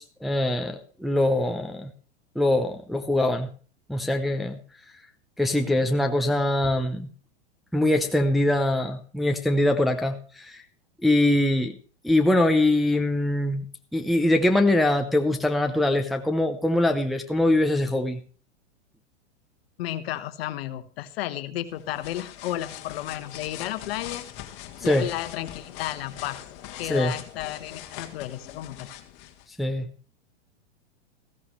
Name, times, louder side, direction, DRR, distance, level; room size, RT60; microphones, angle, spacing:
voice 1, 0.0-1.9 2.4-3.5 3.9-4.6 5.4-7.1 7.7-10.6 11.0-11.8 12.0-13.6 13.9-18.2 24.8-25.1 26.9-27.1 29.6-29.9, left 1 dB, ahead, 4 dB, 0.7 m, -23 dB
voice 2, 19.8-24.3 24.8-26.4 26.8-28.9, left 13 dB, 60° left, 10 dB, 1.3 m, -33 dB
sound 1, 21.7-29.5, left 12 dB, 40° left, 1.7 m, -42 dB
14.5 x 13.5 x 3.2 m, 0.40 s
hypercardioid pair, 130°, 34 cm